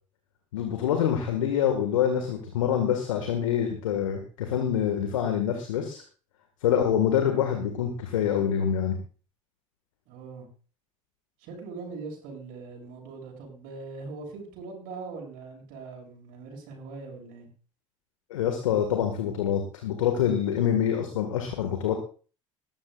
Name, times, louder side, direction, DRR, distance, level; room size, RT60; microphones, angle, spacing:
voice 1, 0.5-6.0 6.6-9.0 18.3-21.9, left 9 dB, 75° left, 5 dB, 1.9 m, -26 dB
voice 2, 10.1-10.5 11.4-17.5, right 4 dB, 60° right, 0 dB, 6.7 m, -41 dB
20.0 x 14.0 x 2.5 m, 0.38 s
figure-of-eight pair, 60°, 17 cm